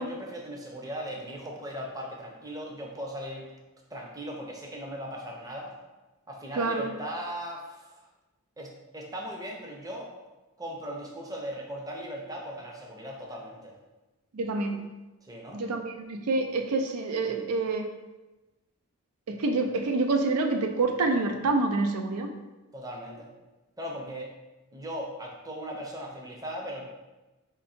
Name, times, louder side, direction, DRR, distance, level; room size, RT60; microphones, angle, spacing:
voice 1, 0.0-3.4 3.9-5.7 6.3-8.1 8.6-10.1 10.6-13.7 15.2-15.6 22.7-23.3 23.8-24.3 24.7-26.8, equal, 15° right, 0 dB, 0.6 m, -38 dB
voice 2, 6.6-6.9 14.3-14.9 15.5-17.9 19.3-22.3, right 3 dB, 85° right, 6 dB, 0.4 m, -27 dB
3.8 x 2.6 x 4.2 m, 1.1 s
head